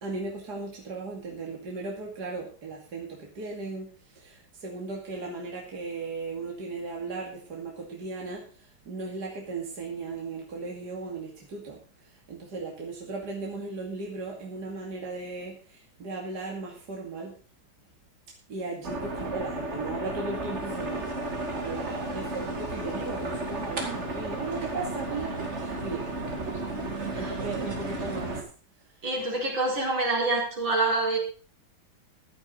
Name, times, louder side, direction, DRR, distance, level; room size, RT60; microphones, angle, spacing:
voice 1, 0.0-3.9 4.2-8.4 8.9-11.8 12.3-17.3 18.5-21.1 21.5-26.1 27.1-28.4, right 3 dB, 55° right, -1 dB, 3.0 m, -36 dB
sound 1, 18.8-28.4, right 2 dB, 35° right, 2.7 m, -33 dB
voice 2, 29.0-31.2, right 2 dB, 75° right, -1 dB, 5.2 m, -26 dB
15.5 x 11.5 x 4.0 m, 0.38 s
omnidirectional pair, 2.1 m